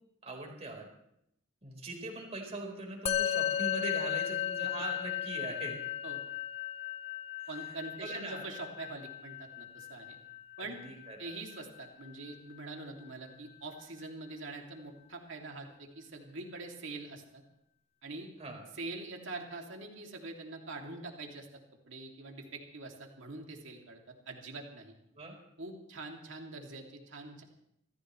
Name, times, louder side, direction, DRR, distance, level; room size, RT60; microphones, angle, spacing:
voice 1, 0.2-0.9 1.6-5.8 7.4-7.7 8.0-8.5 10.6-11.3 18.4-18.6 25.1-25.4, right 2 dB, 30° right, 0 dB, 4.4 m, -41 dB
Musical instrument, 3.1-12.6, left 10 dB, 30° left, 0.9 m, -36 dB
voice 2, 7.5-10.2 10.6-10.8 11.2-17.4 18.0-18.3 18.8-24.9 25.6-27.4, right 3 dB, 65° right, 1 dB, 2.7 m, -44 dB
25.5 x 15.0 x 3.2 m, 0.75 s
head